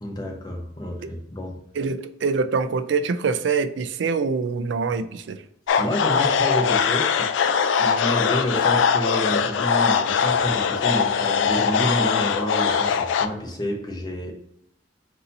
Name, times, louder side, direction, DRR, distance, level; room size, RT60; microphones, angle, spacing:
voice 1, 0.0-1.6 5.8-7.3 7.8-14.3, equal, 25° left, 1 dB, 0.8 m, -29 dB
voice 2, 1.8-5.4, right 5 dB, 75° right, 10 dB, 0.4 m, -24 dB
sound 1, 5.7-13.3, left 6 dB, 90° left, 0.3 m, -21 dB
4.0 x 2.8 x 4.0 m, 0.78 s
head